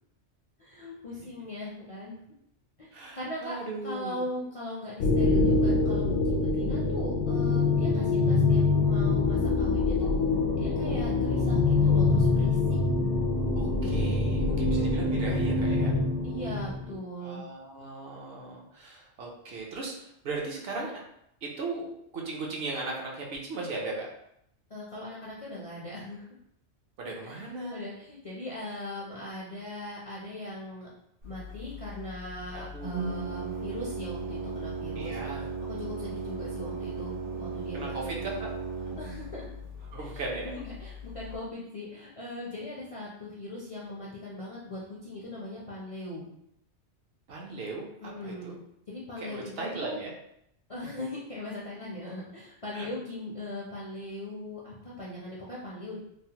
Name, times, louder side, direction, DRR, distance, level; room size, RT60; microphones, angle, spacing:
voice 1, 0.6-2.2 2.8-3.5 3.8-10.1 10.5-12.8 14.5-15.2 16.2-17.4 24.7-26.3 27.2-27.4 27.7-30.9 31.2-35.2 35.7-38.5 39.0-39.5 40.0-40.1 40.4-46.3 48.0-48.6 48.9-50.0 50.7-56.0, left 1 dB, 45° left, -6 dB, 0.4 m, -40 dB
voice 2, 2.9-4.2 13.5-16.0 17.2-21.0 21.4-24.1 27.0-27.8 32.7-33.3 35.0-35.5 37.7-38.5 39.9-40.5 47.3-48.6 49.2-50.1 52.7-52.9, right 3 dB, 65° right, -2 dB, 0.8 m, -37 dB
sound 1, 5.0-17.0, left 3 dB, 85° left, 0.9 m, -25 dB
Organ, 31.2-41.4, right 3 dB, 90° right, 1.4 m, -37 dB
3.1 x 2.0 x 2.8 m, 0.75 s
omnidirectional pair, 1.2 m